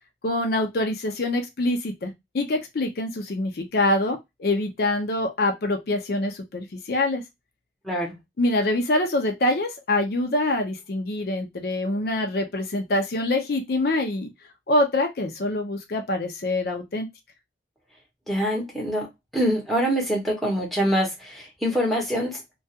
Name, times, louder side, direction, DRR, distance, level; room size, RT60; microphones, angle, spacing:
voice 1, 0.2-7.2 8.4-14.3 14.7-17.1, left 1 dB, 55° left, 4 dB, 0.5 m, -25 dB
voice 2, 7.8-8.2 18.3-19.1 19.3-22.4, equal, ahead, -1 dB, 0.8 m, -25 dB
2.3 x 2.2 x 2.7 m, 0.19 s
head